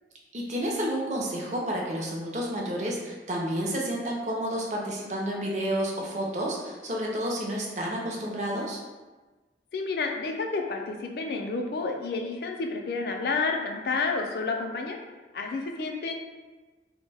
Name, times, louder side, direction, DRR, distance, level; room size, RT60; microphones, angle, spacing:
voice 1, 0.3-8.8, equal, 40° right, -2 dB, 0.5 m, -30 dB
voice 2, 9.7-15.0 15.3-16.1, left 4 dB, 60° left, 3 dB, 0.3 m, -30 dB
2.5 x 2.1 x 3.3 m, 1.2 s
head